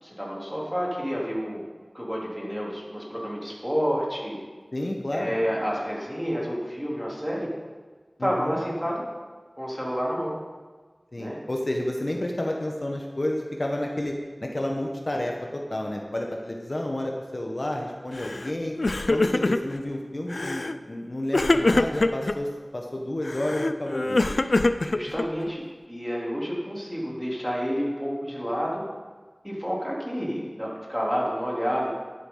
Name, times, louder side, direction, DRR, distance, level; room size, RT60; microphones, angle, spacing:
voice 1, 0.0-1.7 1.9-4.4 5.1-7.5 8.2-9.0 9.6-10.3 11.2-11.4 24.5-25.6 25.9-28.8 29.4-31.9, equal, 5° right, -5 dB, 3.3 m, -29 dB
voice 2, 4.7-5.3 8.2-8.6 11.1-18.7 19.1-24.3, left 1 dB, 55° left, 1 dB, 1.2 m, -30 dB
Crying sobbing, 18.2-18.5 18.8-19.8 20.3-20.8 21.3-22.4 23.2-25.5, left 2 dB, 75° left, 0.4 m, -24 dB
11.5 x 10.5 x 3.9 m, 1.4 s
wide cardioid pair, 45°, 0 cm